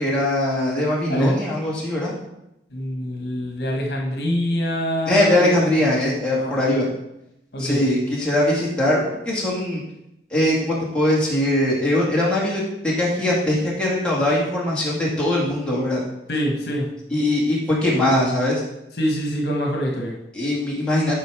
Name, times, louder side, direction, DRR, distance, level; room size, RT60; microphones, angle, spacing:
voice 1, 0.0-2.1 5.1-6.9 7.6-9.8 10.3-16.0 17.1-18.6 20.3-21.2, left 1 dB, 5° left, -6 dB, 2.2 m, -21 dB
voice 2, 2.7-5.8 6.3-6.6 7.5-7.8 16.3-16.9 19.0-20.2, equal, 60° left, 1 dB, 1.4 m, -25 dB
9.0 x 5.2 x 4.8 m, 0.85 s
head